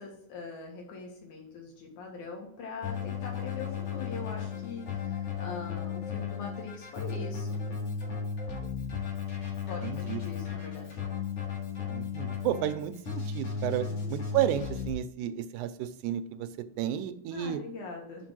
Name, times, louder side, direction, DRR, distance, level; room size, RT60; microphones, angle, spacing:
voice 1, 0.0-7.6 9.7-11.0 13.9-14.1 17.3-18.3, left 4 dB, 80° left, 0 dB, 3.1 m, -42 dB
Keyboard (musical), 2.8-14.9, left 6 dB, 55° left, 2.7 m, -35 dB
voice 2, 9.8-10.2 11.9-16.5 16.8-17.6, right 11 dB, 90° right, 11 dB, 2.1 m, -32 dB
6.2 x 5.2 x 6.0 m, 0.68 s
omnidirectional pair, 3.4 m